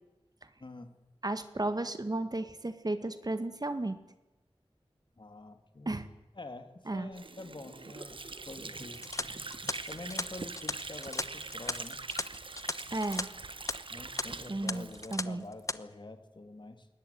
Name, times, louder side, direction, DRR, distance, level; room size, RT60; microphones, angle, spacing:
voice 1, 0.6-1.0 5.2-6.0 6.4-9.0 9.9-12.0 13.9-16.9, left 2 dB, 50° left, 7 dB, 2.9 m, -46 dB
voice 2, 1.2-4.0 5.9-6.1 6.9-7.1 12.9-13.3 14.5-15.4, right 2 dB, 40° right, 10 dB, 1.9 m, -34 dB
Water / Sink (filling or washing), 7.1-15.7, right 3 dB, 60° right, 1.2 m, -43 dB
sound 1, 8.9-13.2 13.5-13.7 14.2-14.3 14.7-15.2 15.5-15.8, left 2 dB, 30° left, 1.0 m, -36 dB
21.5 x 18.5 x 9.4 m, 0.98 s
wide cardioid pair, 60°, 10 cm